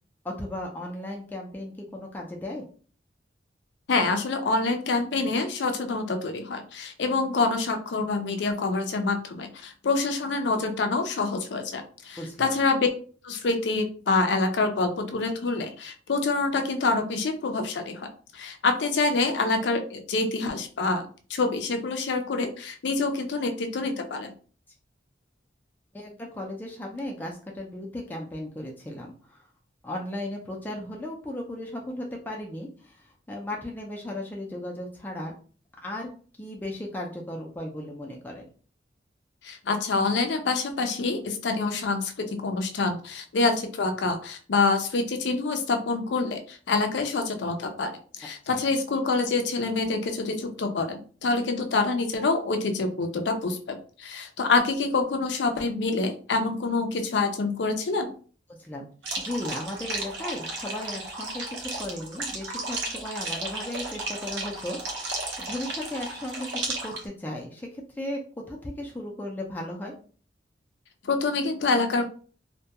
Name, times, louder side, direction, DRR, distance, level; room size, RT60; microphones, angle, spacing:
voice 1, 0.2-2.6 12.2-12.5 25.9-29.5 29.8-35.3 35.8-36.1 36.4-38.5 48.4-48.6 58.6-58.9 59.2-68.2 68.5-69.9, left 1 dB, 10° left, -1 dB, 0.4 m, -36 dB
voice 2, 3.9-12.9 13.2-24.3 39.4-58.1 71.0-72.1, left 3 dB, 75° left, 6 dB, 0.4 m, -26 dB
sound 1, 59.0-67.0, right 2 dB, 75° right, 0.7 m, -34 dB
2.3 x 2.2 x 2.7 m, 0.42 s
head